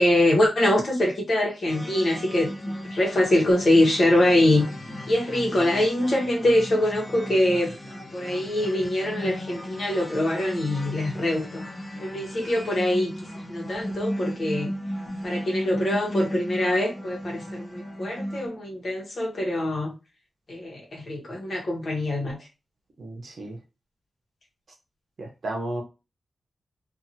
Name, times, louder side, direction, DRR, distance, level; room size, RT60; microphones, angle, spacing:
voice 1, 0.0-4.6 5.1-7.7 8.1-11.6 12.0-14.7 15.2-19.9 20.5-22.4, left 1 dB, 50° left, 1.1 m, -24 dB
sound 1, 1.7-18.5, equal, 30° left, 1.0 m, -35 dB
voice 2, 23.0-23.6 25.2-25.8, right 1 dB, 60° right, 0.9 m, -33 dB
2.7 x 2.6 x 2.7 m
wide cardioid pair, 130°, 0 cm